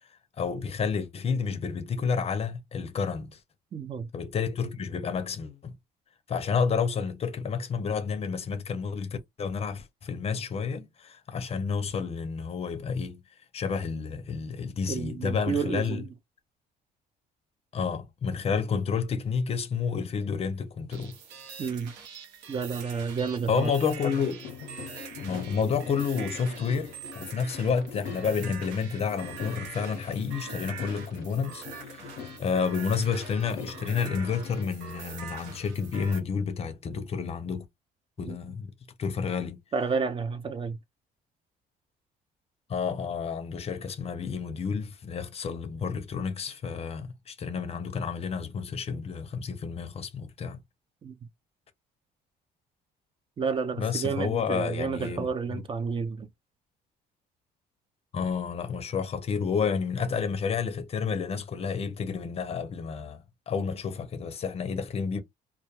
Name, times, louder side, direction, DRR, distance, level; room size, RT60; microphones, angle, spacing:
voice 1, 0.4-3.4 4.1-5.8 6.3-13.2 13.5-16.0 17.7-21.1 23.5-24.4 25.2-32.1 32.4-37.7 38.2-38.7 39.0-39.6 42.7-50.6 53.8-55.3 58.1-65.2, left 6 dB, 35° left, 0.5 m, -30 dB
voice 2, 3.7-4.1 14.9-16.1 21.6-21.9 22.5-23.7 38.3-38.4 39.7-40.8 51.0-51.1 53.4-56.3, right 5 dB, 30° right, 0.4 m, -30 dB
sound 1, 20.9-36.2, right 6 dB, 85° right, 0.8 m, -44 dB
sound 2, 24.4-34.7, left 7 dB, 85° left, 0.5 m, -43 dB
2.2 x 2.1 x 2.8 m
cardioid pair, 110°, 17 cm